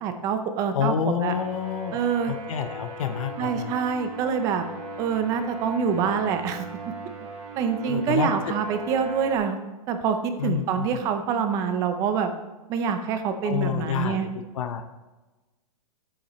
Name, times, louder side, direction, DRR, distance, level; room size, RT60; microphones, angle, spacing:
voice 1, 0.0-1.3 1.9-2.3 3.4-4.6 5.0-6.6 7.2-7.3 7.6-9.6 9.9-12.3 12.7-14.3, right 6 dB, 15° right, 8 dB, 0.5 m, -26 dB
voice 2, 0.7-2.0 2.3-3.7 7.8-8.3 10.4-11.0 13.4-14.3 14.5-14.8, left 8 dB, 60° left, 7 dB, 0.8 m, -28 dB
sound 1, 1.2-9.4, right 2 dB, 75° right, 2.9 m, -39 dB
10.5 x 8.7 x 3.1 m, 1.1 s
hypercardioid pair, 165°, 19 cm